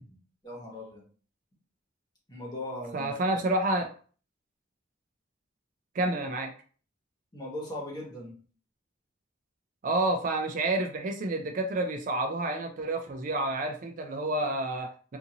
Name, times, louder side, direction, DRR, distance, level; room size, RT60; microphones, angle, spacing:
voice 1, 0.4-1.0 2.3-3.4 7.3-8.3, left 1 dB, 20° left, -3 dB, 1.1 m, -39 dB
voice 2, 2.9-3.9 5.9-6.5 9.8-15.2, right 2 dB, 45° right, 4 dB, 0.4 m, -29 dB
2.6 x 2.5 x 2.7 m, 0.41 s
head